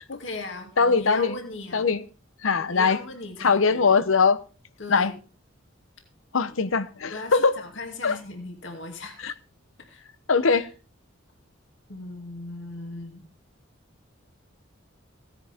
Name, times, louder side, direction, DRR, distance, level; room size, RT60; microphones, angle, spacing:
voice 1, 0.1-1.9 2.7-3.9 4.8-5.1 7.1-9.3 9.8-10.0 10.6-10.7 11.9-13.3, left 2 dB, 65° left, 2.4 m, -38 dB
voice 2, 0.8-1.4 1.7-2.0 2.4-3.0 3.4-4.4 4.9-5.1 6.3-7.5 8.0-8.2 9.2-9.3 10.3-10.7, left 5 dB, 85° left, 0.9 m, -21 dB
16.0 x 10.0 x 3.6 m
head